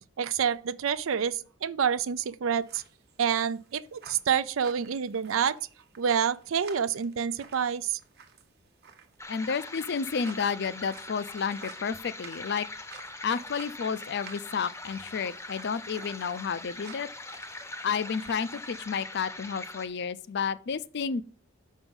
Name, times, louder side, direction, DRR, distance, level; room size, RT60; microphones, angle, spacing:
voice 1, 0.2-2.8 3.2-5.6 6.0-8.0, right 7 dB, 80° right, 0.5 m, -28 dB
sound 1, 2.6-18.8, right 5 dB, 55° right, 1.0 m, -53 dB
sound 2, 9.2-19.9, left 2 dB, 15° left, 0.7 m, -42 dB
voice 2, 9.3-12.7 13.2-17.1 17.8-21.2, left 6 dB, 55° left, 0.5 m, -31 dB
5.9 x 5.5 x 5.4 m
head